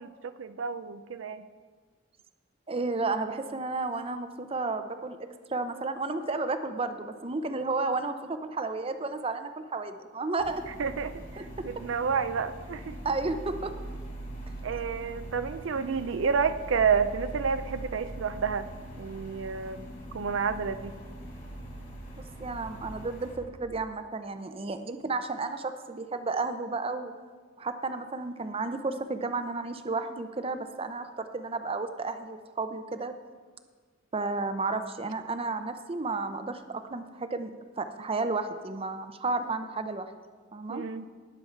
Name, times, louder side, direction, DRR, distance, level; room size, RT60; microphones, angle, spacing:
voice 1, 0.0-1.4 10.8-11.1 11.6-12.9 14.6-18.7 19.0-20.9 40.7-41.0, right 6 dB, 70° right, 11 dB, 0.4 m, -30 dB
voice 2, 2.7-5.2 5.5-10.6 11.4-11.7 13.0-13.7 22.4-27.1 27.6-33.1 34.1-40.1 40.5-40.8, right 3 dB, 30° right, 9 dB, 0.6 m, -32 dB
sound 1, 10.4-23.4, right 1 dB, 45° left, 3.1 m, -42 dB
18.5 x 7.1 x 4.5 m, 1.5 s
head